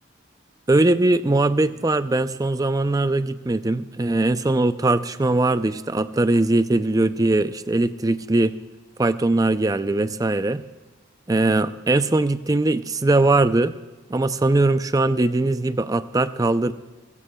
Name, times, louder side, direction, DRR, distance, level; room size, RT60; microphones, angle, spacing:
voice 1, 0.7-8.5 9.0-10.6 11.3-13.7 14.1-16.7, right 2 dB, 20° right, 12 dB, 0.4 m, -20 dB
23.0 x 16.5 x 2.3 m, 1.3 s
head